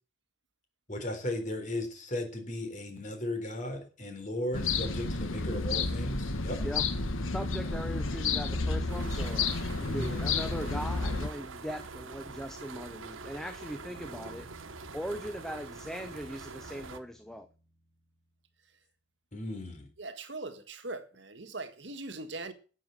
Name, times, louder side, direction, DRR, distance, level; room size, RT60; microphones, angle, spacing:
voice 1, 0.9-6.6 9.8-10.1 19.3-19.9, left 1 dB, 40° left, 3.8 m, -36 dB
sound 1, 4.5-11.3, left 3 dB, 80° left, 1.5 m, -31 dB
voice 2, 7.3-9.5 9.8-14.5 14.9-17.5, equal, 5° left, 0.8 m, -39 dB
sound 2, 8.9-17.0, right 4 dB, 80° right, 1.2 m, -45 dB
Bass guitar, 13.9-18.3, right 1 dB, 20° left, 7.5 m, -58 dB
voice 3, 20.0-22.5, right 2 dB, 60° right, 1.7 m, -40 dB
12.5 x 7.9 x 7.7 m
head